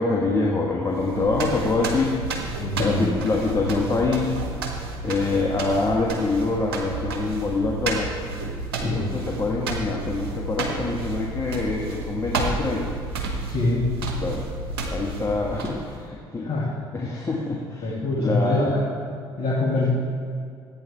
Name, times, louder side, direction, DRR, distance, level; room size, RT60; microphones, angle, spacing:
voice 1, 0.0-2.2 2.8-4.3 5.0-8.1 8.8-13.0 14.2-14.5 14.9-16.5 16.9-18.8, left 3 dB, 25° left, -2 dB, 1.7 m, -25 dB
sound 1, 0.9-16.0, right 3 dB, 80° right, 1.1 m, -31 dB
voice 2, 2.6-3.0 8.7-9.0 13.5-13.8 16.4-16.7 17.8-18.8 19.4-19.9, left 2 dB, 50° left, -6 dB, 2.3 m, -24 dB
15.0 x 8.8 x 3.5 m, 2.3 s
figure-of-eight pair, 55°, 13 cm